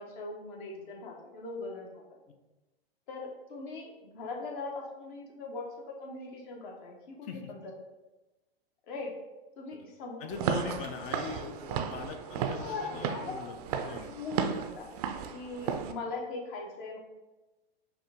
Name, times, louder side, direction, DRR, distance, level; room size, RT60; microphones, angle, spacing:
voice 1, 0.0-2.2 3.1-7.6 8.8-9.2 9.6-10.6 12.5-13.4 13.8-14.9 15.3-17.0, left 3 dB, 50° left, 0 dB, 1.2 m, -40 dB
voice 2, 10.2-14.2, left 6 dB, 25° left, 7 dB, 0.4 m, -42 dB
Walk footsteps / Siren, 10.3-15.9, right 7 dB, 40° right, 0.4 m, -34 dB
5.8 x 2.5 x 3.6 m, 1.1 s
hypercardioid pair, 105°, 31 cm